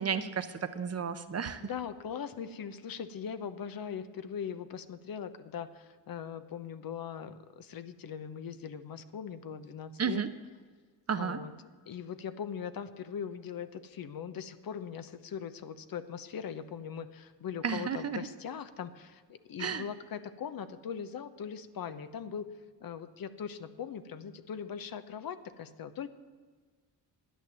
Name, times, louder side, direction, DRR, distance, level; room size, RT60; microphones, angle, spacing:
voice 1, 0.0-1.6 10.0-10.3 11.1-11.4 17.6-18.3 19.6-19.8, right 6 dB, 35° right, 10 dB, 0.8 m, -32 dB
voice 2, 1.6-10.2 11.2-11.5 11.9-22.5 22.8-26.1, left 7 dB, 50° left, 11 dB, 0.9 m, -40 dB
11.5 x 9.2 x 7.6 m, 1.5 s
cardioid pair, 90°, 43 cm